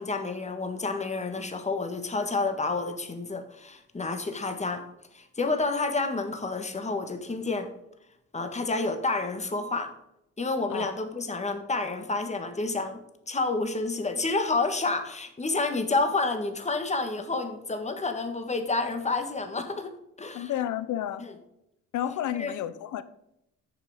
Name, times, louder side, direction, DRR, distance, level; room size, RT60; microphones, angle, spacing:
voice 1, 0.0-4.8 5.1-7.7 8.3-9.9 10.4-13.0 13.3-20.5 22.4-22.5, left 3 dB, 25° left, 6 dB, 1.7 m, -29 dB
voice 2, 20.3-21.2 21.9-23.0, left 11 dB, 75° left, 14 dB, 0.8 m, -31 dB
9.5 x 6.8 x 4.9 m, 0.83 s
cardioid pair, 90°, 30 cm